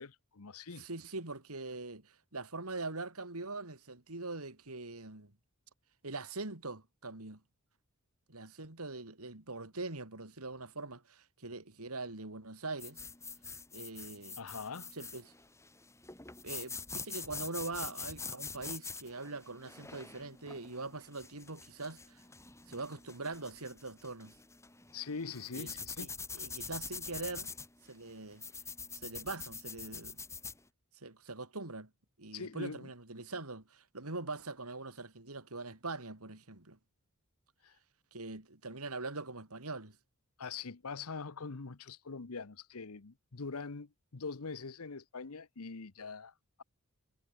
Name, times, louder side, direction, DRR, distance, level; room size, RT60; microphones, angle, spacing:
voice 1, 0.0-0.9 14.4-15.0 24.9-26.1 32.3-32.9 37.6-37.8 40.4-46.6, left 4 dB, 75° left, 1.0 m, -43 dB
voice 2, 0.8-5.3 6.0-7.4 8.3-13.0 13.7-14.4 14.9-15.3 16.4-22.2 22.7-24.3 25.5-25.7 26.0-26.1 26.3-27.5 27.9-28.4 28.9-30.2 31.0-31.9 32.2-36.8 38.1-40.0, right 3 dB, 80° right, 3.3 m, -42 dB
sound 1, 12.8-30.6, left 4 dB, 15° left, 3.1 m, -45 dB
head